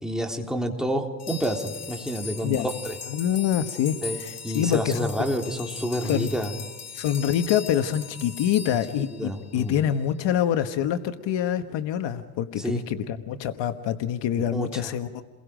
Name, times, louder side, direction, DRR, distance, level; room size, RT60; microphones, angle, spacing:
voice 1, 0.0-3.0 4.0-4.2 4.4-6.5 9.1-9.8 12.6-12.8 14.5-14.9, equal, ahead, 1 dB, 3.5 m, -29 dB
sound 1, 1.2-9.7, left 6 dB, 35° left, 2.2 m, -39 dB
voice 2, 3.1-5.1 6.0-6.3 6.9-15.2, left 10 dB, 65° left, 9 dB, 1.4 m, -26 dB
29.5 x 22.0 x 5.1 m, 1.4 s
cardioid pair, 105°, 47 cm